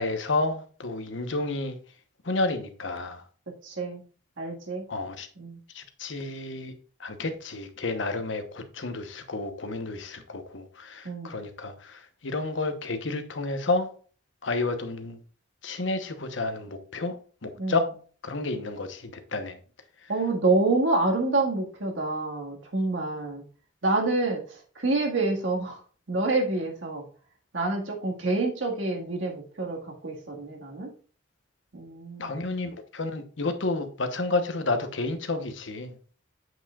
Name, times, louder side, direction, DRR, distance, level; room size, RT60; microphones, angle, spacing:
voice 1, 0.0-1.8 2.2-3.2 4.9-5.3 5.7-6.7 7.0-13.9 14.4-15.2 15.6-17.9 18.2-19.6 20.0-20.1 32.2-35.9, left 3 dB, 80° left, 1.1 m, -30 dB
voice 2, 3.6-4.0 4.4-4.8 5.4-5.6 11.0-11.4 17.6-17.8 20.1-23.4 23.8-25.8 26.1-27.0 27.5-30.9 31.7-32.4, right 2 dB, 85° right, 1.8 m, -27 dB
8.0 x 7.4 x 2.4 m
head